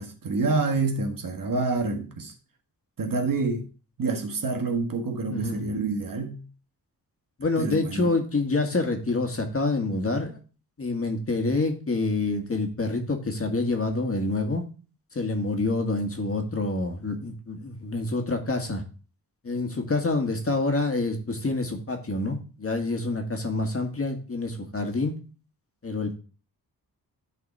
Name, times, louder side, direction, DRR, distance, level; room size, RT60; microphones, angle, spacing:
voice 1, 0.0-2.3 3.0-3.7 4.0-6.4 7.6-8.1, right 3 dB, 65° right, 1.6 m, -27 dB
voice 2, 5.3-5.6 7.4-10.4 10.8-14.6 15.1-18.8 19.4-25.1 25.8-26.2, left 2 dB, 40° left, 1.7 m, -27 dB
11.0 x 4.2 x 4.1 m
wide cardioid pair, 95°, 36 cm